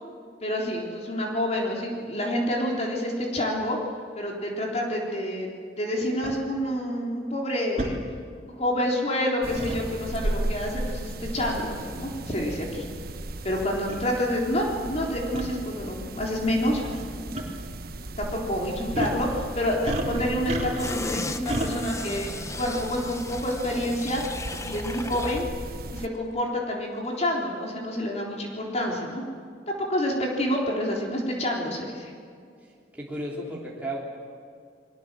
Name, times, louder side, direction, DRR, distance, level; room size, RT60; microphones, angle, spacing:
voice 1, 0.4-3.8 4.2-5.5 5.8-7.9 8.6-12.8 13.4-16.8 17.1-17.3 18.2-22.3 22.6-24.2 24.6-25.5 25.9-29.2 29.7-32.1, left 1 dB, 40° left, -1 dB, 3.7 m, -28 dB
sound 1, 6.2-6.4 7.8-8.0 9.5-9.8 11.6-11.8 12.6-12.7 13.5-13.6 13.9-14.0 15.3-15.5 16.8-17.0 17.3-17.4 18.9-19.2 19.8-21.0 21.5-21.7, right 1 dB, 40° right, 3.6 m, -30 dB
sound 2, 9.4-26.1, right 1 dB, 60° right, 1.2 m, -36 dB
sound 3, 20.8-25.5 25.9-26.0, left 2 dB, 15° left, 1.1 m, -36 dB
voice 2, 32.6-34.0, right 1 dB, 10° right, -5 dB, 3.3 m, -34 dB
30.0 x 22.0 x 7.6 m, 2.3 s
head